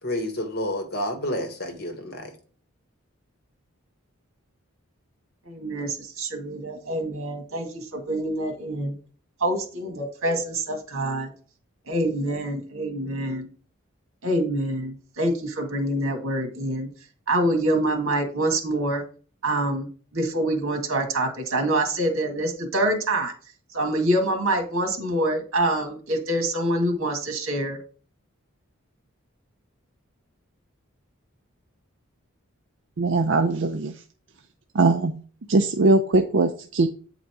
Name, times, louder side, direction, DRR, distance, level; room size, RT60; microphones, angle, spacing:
voice 1, 0.0-2.4, left 1 dB, 45° left, 1.3 m, -29 dB
voice 2, 5.5-8.9 9.4-11.3 11.9-13.5 14.2-16.9 17.3-19.0 19.4-23.3 23.7-27.8, right 1 dB, 85° right, 2.0 m, -26 dB
voice 3, 33.0-34.0 34.7-35.2 35.5-36.9, right 3 dB, 60° right, 0.5 m, -21 dB
8.5 x 4.0 x 4.6 m
head